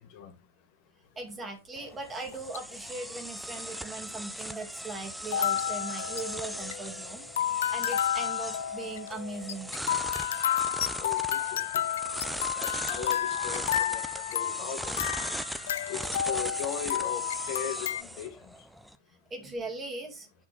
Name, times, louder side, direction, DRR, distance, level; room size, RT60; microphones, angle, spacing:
voice 1, 1.2-9.7 19.3-20.3, right 3 dB, 15° right, 2.2 m, -39 dB
sound 1, 1.8-18.9, equal, ahead, 0.7 m, -39 dB
sound 2, 2.3-2.8 3.6-3.7 5.2-18.0, left 10 dB, 60° left, 0.3 m, -31 dB
voice 2, 11.0-11.6 12.6-15.0 15.9-18.4, left 8 dB, 45° left, 1.4 m, -38 dB
8.9 x 5.9 x 3.4 m
figure-of-eight pair, 90°, 0 cm